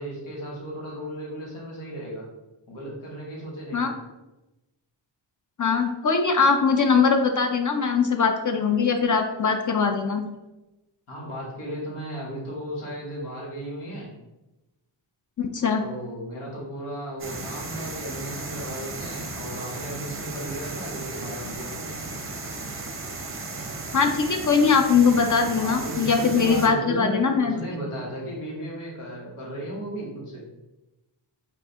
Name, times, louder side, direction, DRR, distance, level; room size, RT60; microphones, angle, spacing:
voice 1, 0.0-2.3 2.7-3.9 11.1-14.1 15.8-22.0 25.6-30.4, equal, 80° left, -4 dB, 1.4 m, -35 dB
voice 2, 5.6-10.2 15.4-15.8 23.9-27.5, left 5 dB, 40° left, 5 dB, 0.4 m, -21 dB
sound 1, 17.2-26.7, right 3 dB, 25° right, 0.5 m, -35 dB
4.6 x 2.4 x 2.8 m, 1.0 s
cardioid pair, 60°, 49 cm